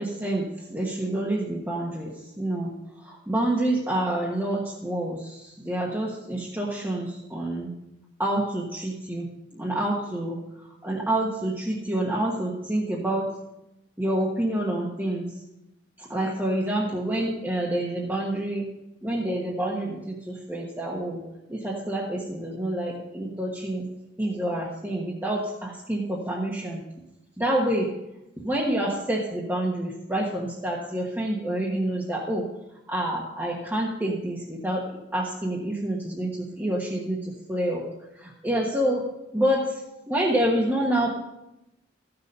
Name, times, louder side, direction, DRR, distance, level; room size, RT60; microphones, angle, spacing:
voice 1, 0.0-7.7 8.2-13.3 14.0-15.3 16.0-18.7 19.0-21.2 21.5-23.9 24.2-26.8 27.4-27.9 28.4-32.5 32.9-34.9 35.1-37.8 38.2-39.0 39.3-39.8 40.1-41.1, right 1 dB, 10° right, -4 dB, 1.3 m, -28 dB
14.0 x 6.8 x 5.4 m, 0.92 s
head